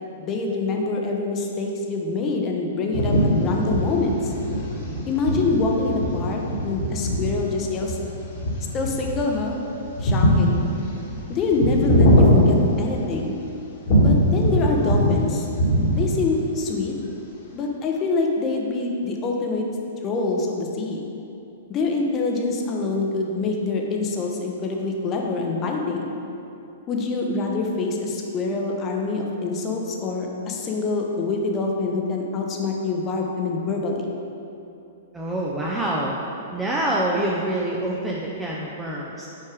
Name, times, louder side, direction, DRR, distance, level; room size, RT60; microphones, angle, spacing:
voice 1, 0.2-4.3 5.1-8.0 8.7-9.6 10.0-10.7 11.3-13.4 14.0-15.4 15.9-16.9 17.5-19.6 20.0-21.0 21.7-26.1 26.9-34.1, left 3 dB, 30° left, 0 dB, 0.8 m, -25 dB
sound 1, 2.9-13.3 13.9-15.2 15.5-16.3, equal, 55° left, 1.5 m, -21 dB
voice 2, 35.1-36.2 36.5-39.3, right 1 dB, 10° right, -4 dB, 0.6 m, -26 dB
5.7 x 4.6 x 4.8 m, 2.8 s
figure-of-eight pair, 110°, 0 cm